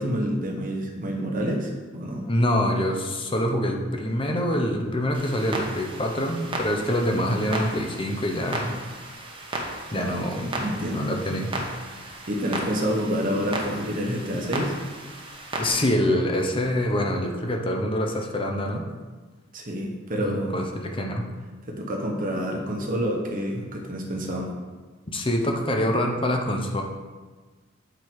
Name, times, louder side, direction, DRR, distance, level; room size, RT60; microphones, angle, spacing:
voice 1, 0.0-2.2 10.0-11.4 12.0-14.8 19.5-20.6 21.7-24.5, equal, 45° right, 1 dB, 1.2 m, -28 dB
voice 2, 2.3-8.8 9.9-11.6 15.6-18.9 20.2-21.3 25.1-26.8, left 1 dB, 25° left, 2 dB, 0.8 m, -25 dB
Clock, 5.1-15.7, right 1 dB, 25° right, 1.1 m, -35 dB
7.7 x 4.8 x 4.6 m, 1.3 s
head